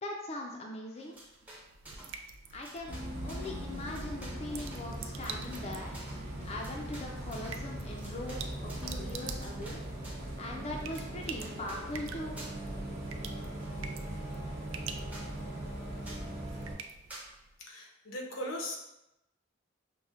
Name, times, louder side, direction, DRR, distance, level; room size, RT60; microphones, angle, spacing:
voice 1, 0.0-1.1 2.5-2.9 3.2-6.0 6.4-9.8 10.4-12.6, left 1 dB, 35° left, -1 dB, 0.4 m, -41 dB
sound 1, 0.9-2.2 2.5-10.3 10.7-11.9 12.4-12.8 13.0-14.0 14.5-14.6 14.8-14.9 15.1-15.3 16.0-16.3 17.1-17.3, right 1 dB, 10° right, 0.6 m, -51 dB
sound 2, 1.1-17.6, right 6 dB, 80° right, 0.3 m, -48 dB
Bus, 2.9-16.7, right 1 dB, 55° right, 0.7 m, -40 dB
voice 2, 17.6-18.8, equal, 85° left, 0 dB, 0.7 m, -39 dB
5.5 x 2.1 x 2.4 m, 0.88 s
head